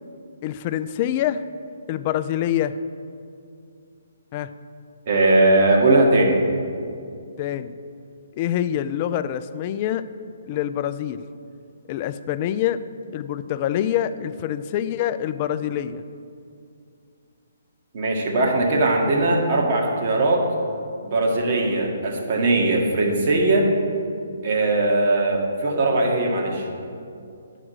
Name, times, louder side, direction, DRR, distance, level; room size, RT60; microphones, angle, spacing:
voice 1, 0.4-1.4 1.9-2.7 4.3-4.5 7.4-7.7 8.4-10.1 10.4-11.2 11.9-12.8 13.1-16.0, left 11 dB, 35° left, 12 dB, 0.3 m, -25 dB
voice 2, 5.1-6.4 17.9-20.5 21.0-23.7 24.4-26.7, right 2 dB, 45° right, 0 dB, 1.6 m, -19 dB
9.8 x 4.9 x 6.3 m, 2.4 s
hypercardioid pair, 150°, 0 cm